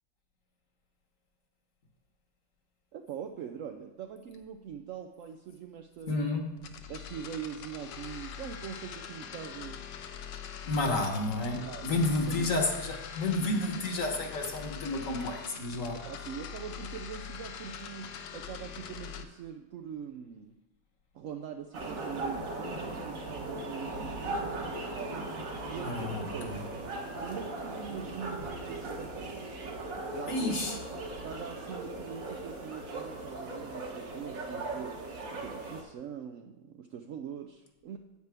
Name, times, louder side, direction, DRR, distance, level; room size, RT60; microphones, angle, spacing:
voice 1, 2.9-6.3 6.9-9.8 11.5-12.6 16.0-20.6 21.1-26.7 27.2-29.7 30.1-30.5 31.2-38.0, right 8 dB, 85° right, 5 dB, 0.7 m, -43 dB
voice 2, 6.1-6.6 10.6-16.0 25.8-26.6 30.3-30.8, left 2 dB, 50° left, 3 dB, 1.3 m, -31 dB
sound 1, 6.6-19.2, left 8 dB, 85° left, 1.3 m, -43 dB
water stream + train cross bridge in countryside, 21.7-35.8, right 2 dB, 50° right, 1.4 m, -38 dB
9.6 x 8.2 x 3.4 m, 1.0 s
omnidirectional pair, 1.9 m